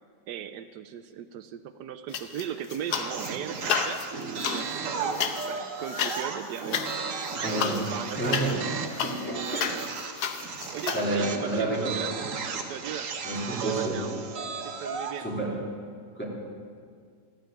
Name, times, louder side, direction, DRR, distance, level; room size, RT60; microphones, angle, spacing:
voice 1, 0.3-4.0 4.4-7.2 7.4-8.6 9.1-10.0 10.5-12.3 12.5-14.1 14.6-15.3, right 9 dB, 85° right, 10 dB, 1.2 m, -38 dB
sound 1, 2.1-3.3 3.6-11.0, left 7 dB, 70° left, 1.4 m, -32 dB
sound 2, 2.9-15.2, right 5 dB, 55° right, 1.3 m, -35 dB
voice 2, 7.3-7.8 8.1-8.6 9.0-9.9 10.9-12.0 13.2-14.0 15.2-15.6 16.2-16.3, right 1 dB, 5° left, -5 dB, 2.8 m, -30 dB
14.0 x 9.3 x 8.9 m, 2.1 s
omnidirectional pair, 1.8 m